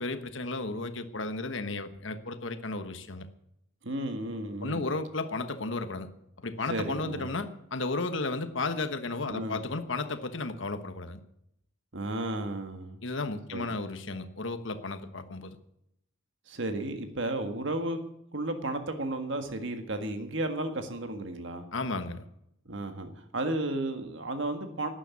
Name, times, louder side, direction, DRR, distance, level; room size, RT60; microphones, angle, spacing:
voice 1, 0.0-3.3 4.6-6.1 6.4-11.2 13.0-15.6 21.7-22.2, left 3 dB, 70° left, 9 dB, 1.2 m, -34 dB
voice 2, 3.8-4.9 6.7-7.3 9.3-9.6 11.9-13.0 13.5-13.7 16.5-18.0 18.3-21.6 22.7-24.9, right 2 dB, 65° right, 6 dB, 1.7 m, -33 dB
12.5 x 10.0 x 8.4 m, 0.76 s
head